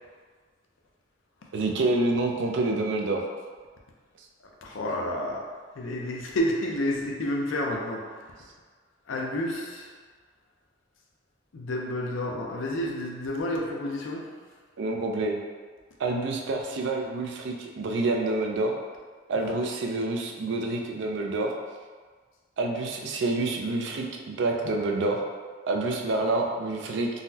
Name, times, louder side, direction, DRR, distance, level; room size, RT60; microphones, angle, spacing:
voice 1, 1.5-3.3 14.8-15.3 16.0-18.8 19.3-21.5 22.6-25.2 25.7-27.1, right 2 dB, 65° right, 1 dB, 0.4 m, -27 dB
voice 2, 4.6-5.5 5.8-8.3 9.1-9.9 11.5-14.3, left 1 dB, 75° left, 0 dB, 0.5 m, -30 dB
3.8 x 2.1 x 2.7 m, 1.5 s
head